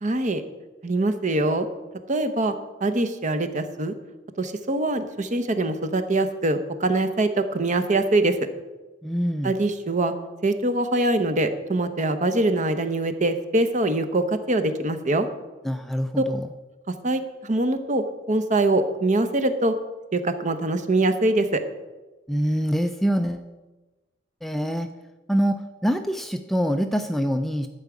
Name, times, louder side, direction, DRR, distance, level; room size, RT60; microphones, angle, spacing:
voice 1, 0.0-0.4 0.8-1.7 2.1-2.5 2.8-3.9 4.4-8.4 9.4-10.1 10.4-15.3 16.2-16.3 17.0-19.7 20.1-21.6, right 2 dB, 40° right, 8 dB, 0.9 m, -23 dB
voice 2, 9.0-9.5 15.6-16.5 22.3-23.4 24.4-24.9 25.3-25.5 25.8-27.7, equal, ahead, 7 dB, 0.4 m, -24 dB
12.0 x 4.9 x 8.2 m, 1.1 s
head